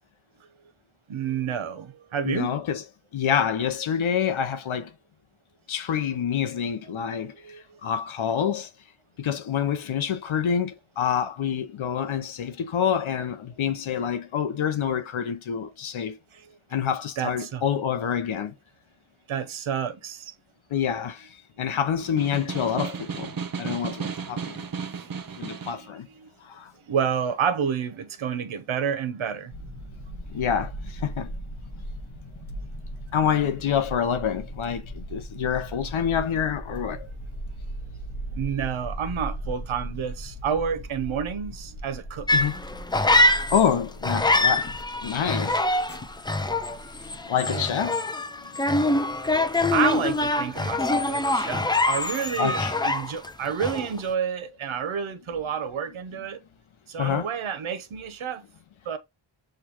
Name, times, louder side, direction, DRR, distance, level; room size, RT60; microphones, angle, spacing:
voice 1, 1.1-2.5 7.4-7.8 16.3-16.5 17.2-17.6 19.3-20.3 24.6-24.9 25.6-25.9 26.1-26.3 26.9-29.5 38.3-42.3 47.5-47.7 49.1-56.4 56.9-58.4 58.8-59.0, right 7 dB, 80° right, 0.7 m, -29 dB
voice 2, 2.2-2.8 3.1-4.9 5.7-7.3 7.8-8.7 9.2-16.2 16.7-18.5 20.7-21.3 21.6-23.3 23.6-24.6 25.4-26.1 26.5-26.7 30.3-31.3 33.1-37.1 42.3-42.5 43.3-44.7 45.0-45.6 47.2-48.0 52.4-52.7 57.0-57.3, left 8 dB, 80° left, 0.7 m, -27 dB
Snare drum, 22.0-25.9, right 6 dB, 45° right, 0.7 m, -34 dB
sound 1, 29.5-47.2, right 1 dB, 30° left, 0.7 m, -38 dB
sound 2, 42.3-43.7 44.0-53.3 53.6-54.0, left 2 dB, 10° left, 0.3 m, -24 dB
6.6 x 2.3 x 2.8 m
cardioid pair, 55°, 47 cm